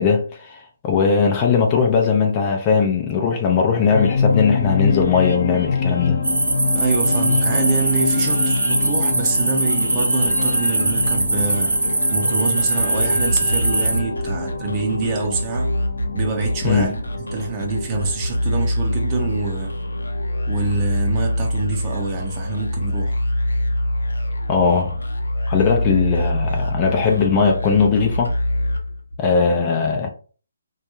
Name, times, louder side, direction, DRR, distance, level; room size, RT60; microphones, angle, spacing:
voice 1, 0.0-6.2 16.6-16.9 24.5-25.0 25.5-28.3 29.2-30.1, left 5 dB, 25° left, 0.4 m, -19 dB
sound 1, 3.9-21.0, left 4 dB, 55° left, 0.8 m, -26 dB
sound 2, 6.2-14.0, right 2 dB, 85° right, 0.4 m, -21 dB
voice 2, 6.7-15.7 16.1-17.1 17.3-19.7 20.5-23.2, right 4 dB, 25° right, 0.6 m, -26 dB
sound 3, 9.7-29.3, left 1 dB, 85° left, 0.6 m, -25 dB
2.3 x 2.2 x 3.0 m
figure-of-eight pair, 145°, 0 cm